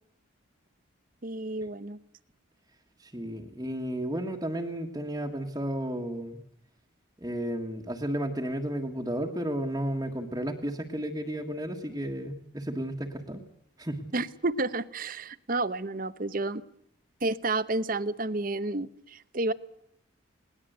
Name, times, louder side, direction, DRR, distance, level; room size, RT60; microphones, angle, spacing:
voice 1, 1.2-2.0 14.1-16.6 17.2-19.5, right 2 dB, 40° right, 15 dB, 0.9 m, -30 dB
voice 2, 3.0-6.4 7.2-13.4 13.8-14.1, right 1 dB, 15° right, 0 dB, 1.6 m, -33 dB
20.5 x 19.0 x 8.1 m, 0.69 s
head